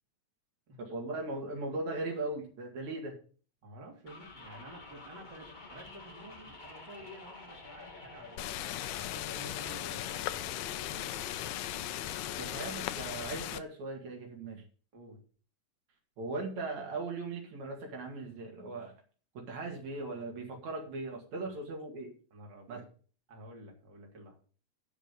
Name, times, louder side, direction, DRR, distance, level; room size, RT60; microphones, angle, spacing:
voice 1, 0.8-3.2 12.4-14.6 16.2-18.9 19.3-22.1 22.7-22.8, right 2 dB, 70° right, 1 dB, 3.4 m, -38 dB
voice 2, 3.6-10.3 14.9-15.2 21.4-21.5 22.3-22.8 23.3-24.4, right 1 dB, 35° right, 0 dB, 3.2 m, -51 dB
sound 1, 4.1-12.6, left 3 dB, 25° left, 0.9 m, -49 dB
sound 2, 8.4-13.6, left 14 dB, 85° left, 2.0 m, -37 dB
10.0 x 6.8 x 6.8 m, 0.40 s
omnidirectional pair, 3.3 m